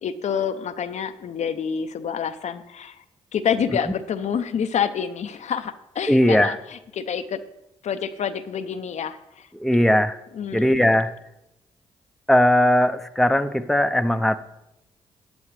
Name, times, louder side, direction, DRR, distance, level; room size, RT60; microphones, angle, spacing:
voice 1, 0.0-3.0 3.3-6.6 6.9-7.4 7.8-9.5 10.4-10.7, left 7 dB, 65° left, 9 dB, 0.6 m, -27 dB
voice 2, 6.1-6.6 9.5-10.2 10.5-11.1 12.3-14.4, left 1 dB, ahead, 8 dB, 0.7 m, -19 dB
13.0 x 9.2 x 3.2 m, 0.89 s
hypercardioid pair, 45°, 13 cm